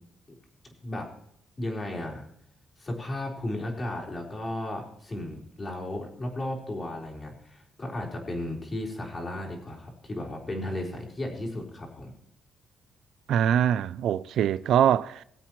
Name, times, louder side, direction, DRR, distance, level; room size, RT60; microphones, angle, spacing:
voice 1, 1.6-2.3 2.8-12.1, left 1 dB, 30° left, 4.1 m, -34 dB
voice 2, 13.3-15.2, right 9 dB, 75° right, 0.4 m, -23 dB
20.0 x 8.1 x 3.1 m
cardioid pair, 90°, 0 cm